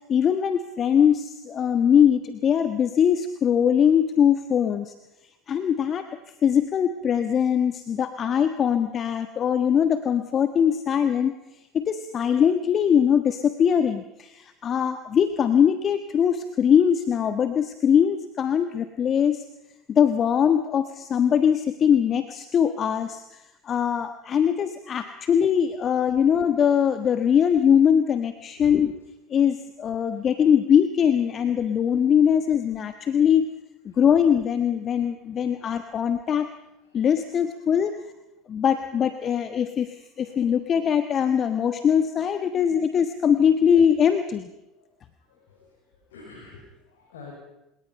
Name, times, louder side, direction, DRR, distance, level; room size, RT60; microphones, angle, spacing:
voice 1, 0.1-4.9 5.5-6.1 6.4-11.3 11.7-19.4 19.9-28.9 29.3-33.5 33.8-36.5 36.9-37.9 38.5-44.5, left 8 dB, 40° left, 9 dB, 1.3 m, -21 dB
voice 2, 35.4-35.8 36.9-37.0 37.8-37.9 40.2-40.3 41.4-41.5 44.8-44.9 45.3-45.7 45.9-47.3, left 4 dB, 75° left, -2 dB, 6.3 m, -47 dB
30.0 x 18.0 x 5.7 m, 0.92 s
hypercardioid pair, 70°, 0 cm